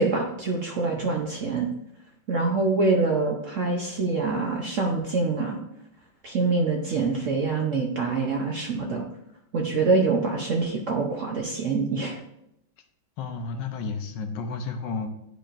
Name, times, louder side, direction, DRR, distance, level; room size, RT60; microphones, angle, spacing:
voice 1, 0.0-1.7 2.3-5.6 6.2-9.1 9.5-12.2, right 3 dB, 60° right, 0 dB, 0.8 m, -25 dB
voice 2, 13.2-15.1, left 4 dB, 70° left, 6 dB, 1.3 m, -32 dB
10.5 x 4.9 x 2.5 m, 0.81 s
omnidirectional pair, 2.1 m